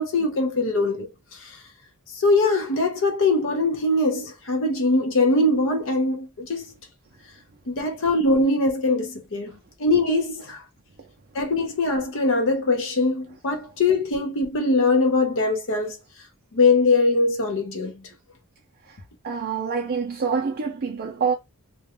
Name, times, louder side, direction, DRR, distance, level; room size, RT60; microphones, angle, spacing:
voice 1, 0.0-1.6 2.1-6.7 7.7-9.5 9.8-10.6 11.3-16.0 16.5-18.0, left 2 dB, 60° left, 0.6 m, -22 dB
voice 2, 19.2-21.3, right 6 dB, 45° right, 0.4 m, -26 dB
2.4 x 2.2 x 2.8 m
head